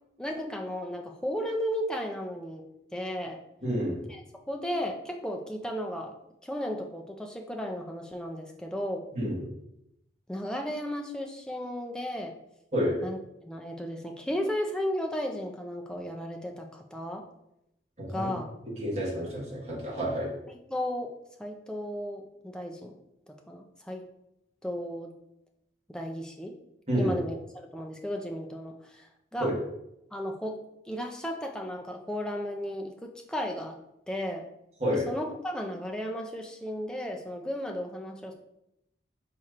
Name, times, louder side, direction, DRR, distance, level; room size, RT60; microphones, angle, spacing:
voice 1, 0.2-2.7 2.9-3.4 4.1-4.2 4.5-6.1 6.4-9.0 10.3-12.3 13.0-17.3 18.1-18.5 20.5-21.1 21.4-23.0 23.5-24.1 24.6-25.1 25.9-26.5 26.9-29.5 30.1-30.6 30.9-33.8 34.1-34.5 34.9-38.3, equal, 5° left, 2 dB, 0.4 m, -34 dB
voice 2, 3.6-4.0 9.1-9.4 12.7-13.0 18.0-18.3 18.7-20.3 26.9-27.1 29.4-29.5 34.8-35.1, equal, 35° right, -6 dB, 1.5 m, -29 dB
4.4 x 4.2 x 2.5 m, 0.84 s
head